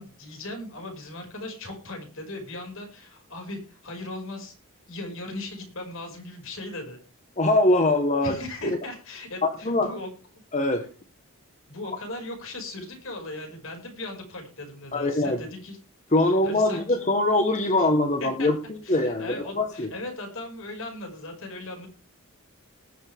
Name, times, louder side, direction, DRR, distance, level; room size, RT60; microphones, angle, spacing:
voice 1, 0.0-4.6 4.9-7.0 8.2-10.1 11.7-15.8 16.2-16.8 17.8-17.9 18.2-18.5 18.8-21.9, left 2 dB, 65° left, 2 dB, 5.8 m, -38 dB
voice 2, 7.4-8.3 8.6-8.8 9.4-9.9 10.5-10.8 14.9-15.4 16.1-18.6 18.9-19.9, left 2 dB, 35° left, 5 dB, 1.4 m, -22 dB
20.0 x 7.7 x 3.5 m, 0.36 s
head